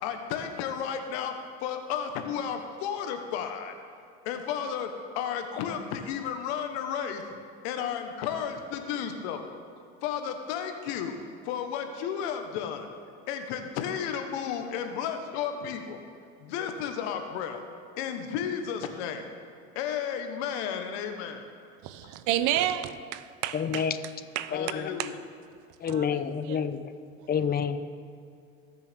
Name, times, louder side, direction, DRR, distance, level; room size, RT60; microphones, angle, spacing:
voice 1, 0.0-1.3 1.6-3.7 4.2-7.2 7.6-9.5 10.0-11.1 11.4-12.9 13.3-16.0 16.4-17.6 18.0-19.3 19.7-21.5 22.0-22.1 24.5-25.2, left 8 dB, 75° left, 6 dB, 1.3 m, -33 dB
voice 2, 21.8-23.9 24.4-24.6 25.0-25.1 25.9-26.6, right 12 dB, 60° right, 13 dB, 0.7 m, -31 dB
voice 3, 23.5-23.9 24.5-24.9 25.8-26.8 27.3-28.0, left 7 dB, 30° left, 11 dB, 0.7 m, -28 dB
20.0 x 6.8 x 3.6 m, 2.4 s
supercardioid pair, 100°, 34 cm